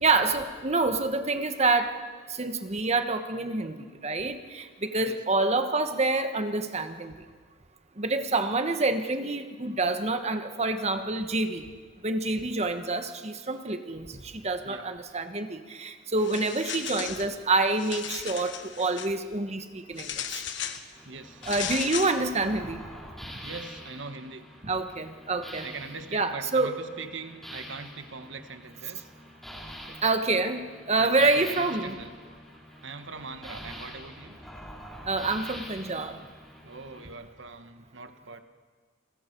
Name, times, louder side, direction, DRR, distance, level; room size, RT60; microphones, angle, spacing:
voice 1, 0.0-2.0 2.3-7.1 8.0-11.6 12.0-20.4 21.5-22.8 24.6-25.7 26.1-26.8 30.0-32.0 35.0-36.1, right 3 dB, 35° right, 7 dB, 1.4 m, -27 dB
sound 1, 16.2-17.3 17.7-19.1 20.0-20.8 21.4-22.2, left 9 dB, 70° left, 1.2 m, -36 dB
sound 2, 20.9-37.1, equal, ahead, 4.2 m, -45 dB
voice 2, 21.0-21.4 23.4-24.5 25.6-29.1 31.0-32.1 32.8-34.4 36.6-38.4, right 4 dB, 80° right, 9 dB, 1.3 m, -42 dB
29.5 x 20.5 x 4.7 m, 1.5 s
head